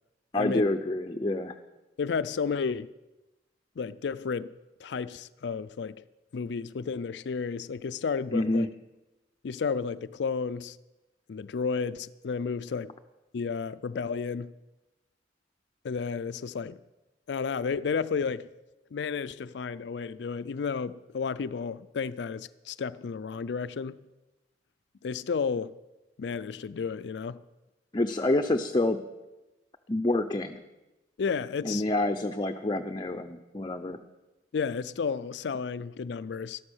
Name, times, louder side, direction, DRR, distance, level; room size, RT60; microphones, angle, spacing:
voice 1, 0.3-1.6 8.3-8.7 27.9-29.0 29.9-30.6 31.6-34.0, left 2 dB, 25° left, 7 dB, 0.6 m, -27 dB
voice 2, 2.0-2.9 3.8-4.5 4.8-6.0 6.3-8.7 9.4-10.8 11.3-12.9 13.3-14.5 15.8-16.8 17.3-18.5 18.9-24.0 25.0-25.7 26.2-27.4 31.2-31.9 34.5-36.6, left 5 dB, 70° left, 15 dB, 0.4 m, -32 dB
13.0 x 12.5 x 6.3 m, 1.1 s
head